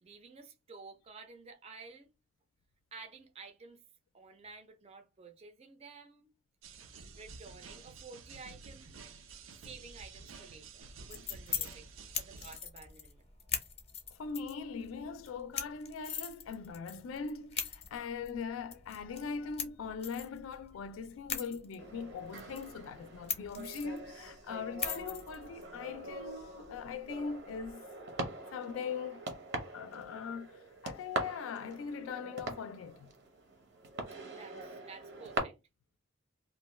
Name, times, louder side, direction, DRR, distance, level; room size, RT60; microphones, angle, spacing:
voice 1, 0.0-2.1 2.9-3.8 4.1-6.3 7.2-9.1 9.6-11.9 12.2-13.3 34.3-35.5, right 4 dB, 30° right, 0.4 m, -52 dB
sound 1, 6.6-12.6, right 4 dB, 90° right, 0.5 m, -51 dB
sound 2, 10.8-27.7, left 7 dB, 30° left, 0.5 m, -43 dB
voice 2, 14.1-27.8 28.5-29.3 29.7-30.5 30.8-33.1, left 5 dB, 85° left, 0.3 m, -41 dB
sound 3, 21.8-35.4, right 2 dB, 60° right, 0.7 m, -43 dB
2.5 x 2.2 x 3.0 m
head